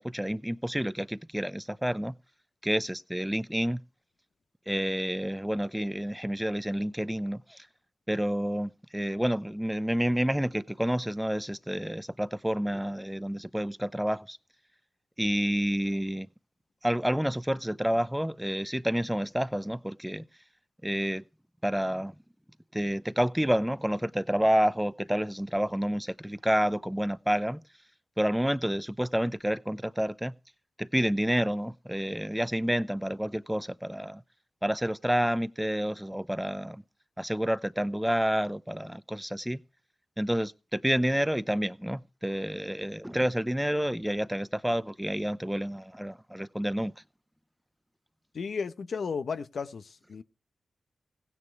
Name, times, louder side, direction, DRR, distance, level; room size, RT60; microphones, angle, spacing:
voice 1, 0.0-2.1 2.6-3.8 4.7-7.7 8.1-14.4 15.2-16.3 16.8-20.3 20.8-21.2 21.6-22.1 22.7-27.6 28.2-30.3 30.8-34.2 34.6-36.8 37.2-39.6 40.2-46.9, equal, 5° right, 0.7 m, -29 dB
voice 2, 48.3-50.2, left 5 dB, 75° left, 1.0 m, -34 dB
16.0 x 9.8 x 4.7 m
cardioid pair, 50°, 0 cm